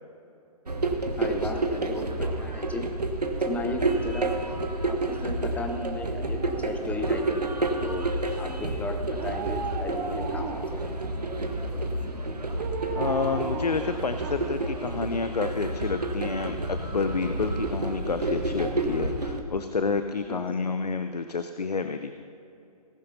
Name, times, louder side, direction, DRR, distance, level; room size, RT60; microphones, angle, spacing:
sound 1, 0.7-19.4, right 2 dB, 90° right, 1.3 m, -30 dB
voice 1, 1.2-2.9 3.4-8.1 8.4-10.9 20.3-20.4, left 2 dB, 5° left, 5 dB, 0.9 m, -36 dB
Dog, 5.4-7.4 9.1-10.8 12.6-14.7 15.0-15.1, right 5 dB, 30° right, 1.1 m, -36 dB
voice 2, 13.0-22.2, left 4 dB, 85° left, 9 dB, 0.6 m, -29 dB
18.5 x 11.0 x 2.8 m, 2.8 s
figure-of-eight pair, 130°, 20 cm